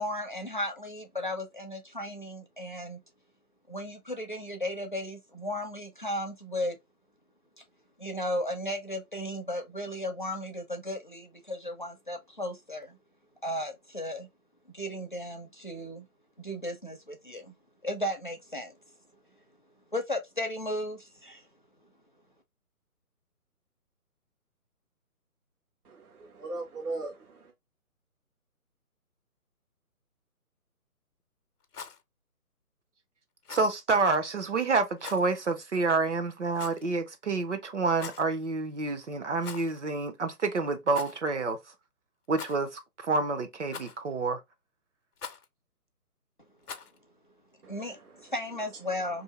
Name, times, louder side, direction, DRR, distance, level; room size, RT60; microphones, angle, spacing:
voice 1, 0.0-3.0 3.7-6.8 8.0-13.0 13.4-14.3 14.7-16.0 16.4-17.6 17.8-18.7 19.9-21.5 47.7-48.0 48.3-49.2, left 1 dB, 35° left, 0.4 m, -35 dB
voice 2, 25.8-27.5 47.6-48.3 48.7-48.9, right 2 dB, 75° right, 1.0 m, -40 dB
Rattle, 31.6-32.0 33.4-33.7 35.0-35.3 36.5-36.9 37.9-38.3 39.4-39.8 40.1-40.2 40.9-41.2 42.3-42.8 43.7-44.1 45.2-45.5 46.6-47.0, left 6 dB, 80° left, 0.6 m, -42 dB
voice 3, 33.5-41.6 42.3-44.4, right 3 dB, 50° right, 0.6 m, -28 dB
2.7 x 2.6 x 2.9 m
figure-of-eight pair, 145°, 45 cm